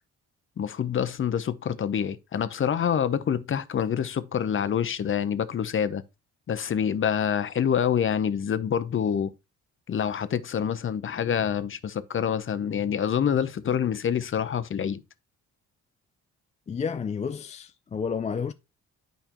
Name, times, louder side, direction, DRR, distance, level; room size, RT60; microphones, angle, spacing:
voice 1, 0.6-6.0 6.5-9.3 9.9-15.0, left 8 dB, 40° left, 0.7 m, -26 dB
voice 2, 16.7-18.5, left 6 dB, 25° left, 0.4 m, -31 dB
8.9 x 5.1 x 3.0 m
cardioid pair, 90°, 30 cm